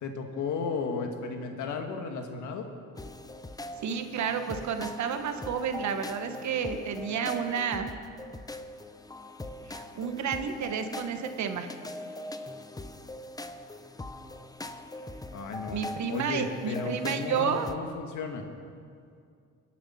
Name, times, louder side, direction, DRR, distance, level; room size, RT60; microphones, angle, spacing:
voice 1, 0.0-2.7 15.3-15.8 16.1-18.4, left 4 dB, 80° left, 4 dB, 1.7 m, -34 dB
sound 1, 3.0-17.8, left 1 dB, 10° left, 0.7 m, -41 dB
voice 2, 3.8-7.9 9.7-11.7 15.7-17.7, right 7 dB, 70° right, 7 dB, 1.3 m, -31 dB
22.5 x 8.3 x 5.7 m, 2.3 s
cardioid pair, 90°, 30 cm